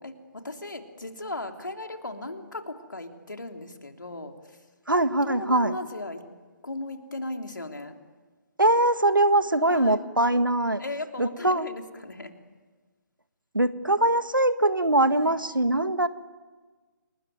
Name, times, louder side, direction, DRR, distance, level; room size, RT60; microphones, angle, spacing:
voice 1, 0.0-4.6 5.2-6.2 6.6-7.9 9.6-10.0 10.8-12.3 15.1-15.4 15.8-16.1, left 2 dB, 70° left, 5 dB, 3.3 m, -37 dB
voice 2, 4.9-5.7 8.6-10.8 11.2-11.7 13.5-16.1, right 1 dB, 80° right, 12 dB, 1.6 m, -22 dB
29.0 x 20.5 x 9.3 m, 1.4 s
figure-of-eight pair, 145°, 11 cm